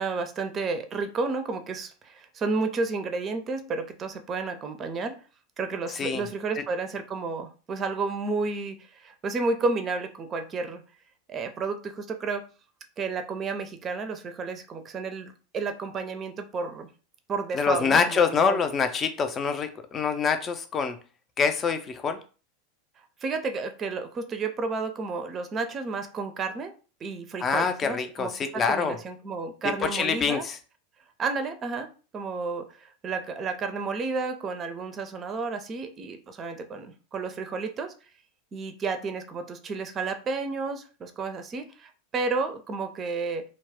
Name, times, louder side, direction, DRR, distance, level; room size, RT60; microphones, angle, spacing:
voice 1, 0.0-5.2 5.6-10.8 11.3-12.4 13.0-16.9 17.3-18.2 18.5-18.6 23.2-26.7 27.0-28.3 28.7-30.4 31.2-37.9 38.5-43.4, right 4 dB, 30° right, 7 dB, 0.4 m, -31 dB
voice 2, 5.9-6.2 6.6-6.7 17.5-21.0 21.4-22.2 27.4-29.0 29.8-30.6, left 5 dB, 30° left, 8 dB, 0.4 m, -25 dB
2.3 x 2.0 x 3.4 m, 0.36 s
hypercardioid pair, 90°, 0 cm